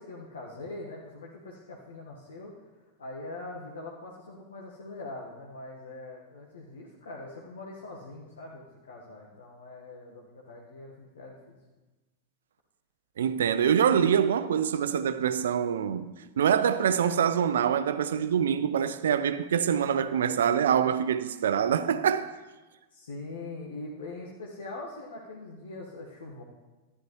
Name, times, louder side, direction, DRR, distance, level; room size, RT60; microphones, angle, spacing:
voice 1, 0.0-2.5 3.0-11.5 22.9-26.4, left 2 dB, 65° left, 1.4 m, -42 dB
voice 2, 13.2-22.3, right 8 dB, 65° right, 0.5 m, -25 dB
13.0 x 11.0 x 3.1 m
figure-of-eight pair, 90°, 0 cm